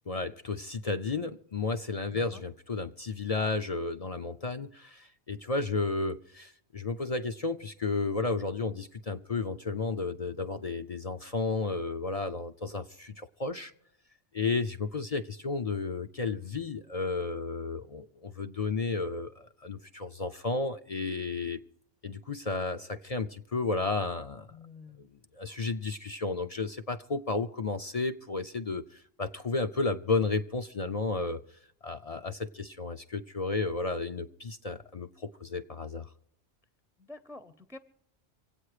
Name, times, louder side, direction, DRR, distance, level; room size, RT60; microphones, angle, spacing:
voice 1, 0.1-13.7 14.3-21.6 22.0-24.5 25.3-31.4 31.8-36.1, left 3 dB, 40° left, 0.6 m, -32 dB
voice 2, 2.1-2.4 24.5-25.0 37.0-37.8, left 3 dB, 5° right, 0.7 m, -48 dB
25.5 x 8.7 x 4.9 m
omnidirectional pair, 1.1 m